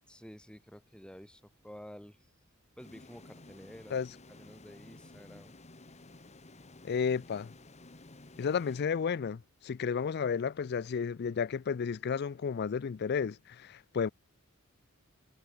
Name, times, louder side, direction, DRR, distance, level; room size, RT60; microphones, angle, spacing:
voice 1, 0.1-2.2 2.8-4.0 4.3-5.5, equal, 5° left, 2.9 m, -51 dB
sound 1, 2.8-9.5, left 2 dB, 35° left, 1.6 m, -54 dB
voice 2, 6.8-7.5 8.4-14.1, left 6 dB, 50° left, 0.4 m, -32 dB
head